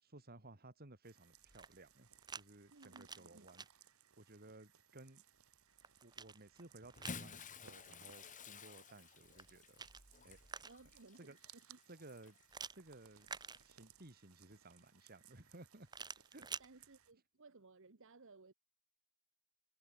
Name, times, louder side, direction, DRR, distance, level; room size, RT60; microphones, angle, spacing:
voice 1, 0.0-3.7 4.2-5.2 6.0-9.8 10.2-10.4 11.2-11.4 11.9-12.4 12.7-13.4 13.6-15.9 16.3-16.5, right 2 dB, 45° right, 3.0 m, -58 dB
sound 1, 1.0-17.1, right 9 dB, 80° right, 2.2 m, -66 dB
sound 2, 1.4-2.4 2.8-3.7 5.4-7.3 9.2-11.0 12.5-14.1 15.9-16.7, right 5 dB, 20° right, 1.2 m, -51 dB
voice 2, 2.7-3.5 10.6-11.8 16.6-18.5, right 3 dB, 65° right, 1.3 m, -61 dB
Bathtub (filling or washing) / Splash splatter, 6.8-12.5 13.4-13.6 15.0-15.1, left 5 dB, 35° left, 1.9 m, -53 dB
head